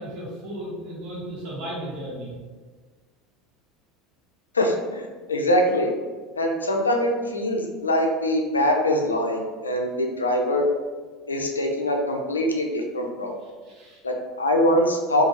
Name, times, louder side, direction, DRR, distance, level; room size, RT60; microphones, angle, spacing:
voice 1, 0.0-2.3 13.4-14.0, right 1 dB, 55° right, -6 dB, 1.3 m, -35 dB
voice 2, 4.5-5.9 6.3-10.7 11.3-13.3 14.0-15.2, left 1 dB, 85° left, 2 dB, 0.4 m, -23 dB
2.6 x 2.4 x 3.0 m, 1.4 s
figure-of-eight pair, 75°, 0 cm